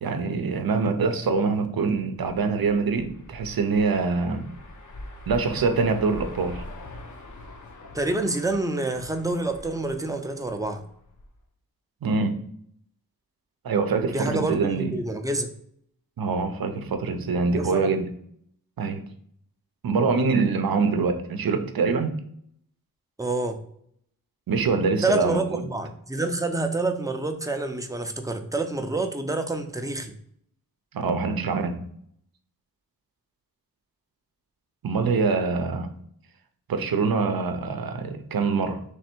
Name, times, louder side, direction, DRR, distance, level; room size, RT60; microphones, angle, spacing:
voice 1, 0.0-4.5 5.3-6.6 12.0-12.4 13.6-14.9 16.2-18.1 18.8-19.0 19.8-22.2 24.5-25.6 30.9-31.9 34.8-35.9 36.7-38.8, right 4 dB, 80° right, 0.6 m, -24 dB
sound 1, 2.1-11.4, left 1 dB, 55° left, 0.7 m, -43 dB
voice 2, 7.9-10.8 14.1-15.5 17.5-18.0 23.2-23.6 25.0-30.1, right 2 dB, 10° right, 0.5 m, -27 dB
3.3 x 3.3 x 4.4 m
wide cardioid pair, 95°, 35 cm